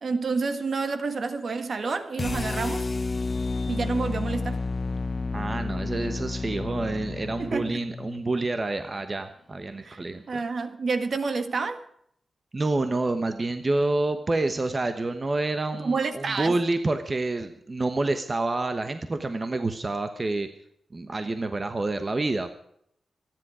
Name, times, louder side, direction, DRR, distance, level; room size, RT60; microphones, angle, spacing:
voice 1, 0.0-2.9 3.7-4.6 7.4-7.8 9.8-10.0 10.3-11.8 15.7-16.6, right 4 dB, 55° right, 1.6 m, -29 dB
sound 1, 2.2-8.3, left 3 dB, 35° left, 0.6 m, -31 dB
voice 2, 5.3-10.2 12.5-20.5 20.9-22.5, right 2 dB, 30° right, 1.1 m, -28 dB
27.0 x 10.5 x 5.0 m
wide cardioid pair, 160°, 0 cm